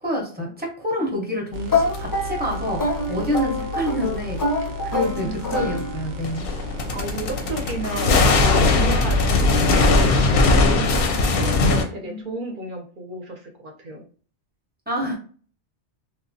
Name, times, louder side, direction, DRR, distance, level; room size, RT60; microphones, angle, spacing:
voice 1, 0.0-4.4 4.8-6.5 12.0-12.2 14.9-15.2, equal, 10° right, -1 dB, 0.7 m, -27 dB
sound 1, 1.5-10.0, left 3 dB, 85° right, 0.9 m, -33 dB
sound 2, 1.7-6.3, left 2 dB, 25° left, 0.4 m, -26 dB
sound 3, 1.9-2.0 3.4-3.5 5.5-5.6 6.2-11.8, left 3 dB, 65° left, 0.7 m, -19 dB
voice 2, 4.9-5.6 6.9-14.0, right 2 dB, 50° right, 2 dB, 0.7 m, -33 dB
3.3 x 2.1 x 2.6 m, 0.42 s
omnidirectional pair, 1.2 m